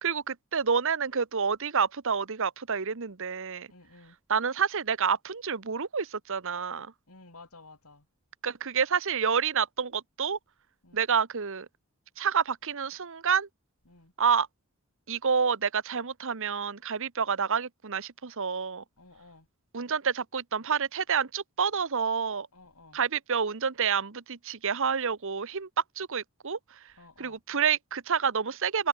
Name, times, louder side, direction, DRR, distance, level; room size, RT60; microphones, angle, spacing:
voice 1, 0.0-3.7 4.3-6.9 8.4-10.4 10.9-11.7 12.2-13.5 14.2-14.5 15.1-18.8 19.7-22.5 22.9-25.7 26.0-26.9 27.2-28.9, right 6 dB, 65° right, 1.0 m, -28 dB
voice 2, 3.7-4.2 7.1-8.1 10.8-11.0 13.9-14.1 19.0-19.5 22.5-23.0 27.0-27.4, left 3 dB, 85° left, 4.9 m, -53 dB
head